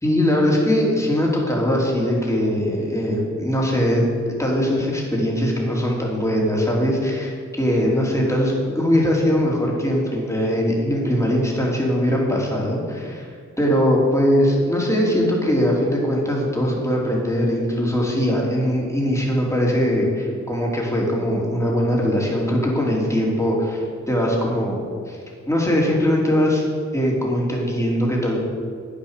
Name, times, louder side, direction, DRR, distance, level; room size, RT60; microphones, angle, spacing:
voice 1, 0.0-4.0 4.4-25.2 25.5-26.6 26.9-28.4, equal, 10° left, -3 dB, 3.6 m, -21 dB
10.5 x 10.0 x 6.7 m, 2.2 s
wide cardioid pair, 80°, 30 cm